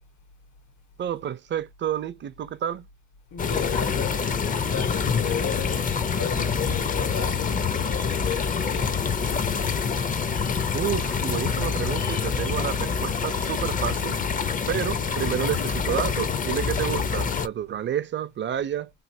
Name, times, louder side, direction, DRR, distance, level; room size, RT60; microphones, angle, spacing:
voice 1, 1.0-2.9 10.7-14.2 14.7-18.9, right 10 dB, 40° right, 0.4 m, -30 dB
voice 2, 3.3-5.8 6.1-9.1, left 7 dB, 75° left, 1.2 m, -33 dB
sound 1, 3.4-17.5, left 6 dB, 30° left, 0.4 m, -26 dB
3.2 x 2.7 x 2.6 m
cardioid pair, 90°, 30 cm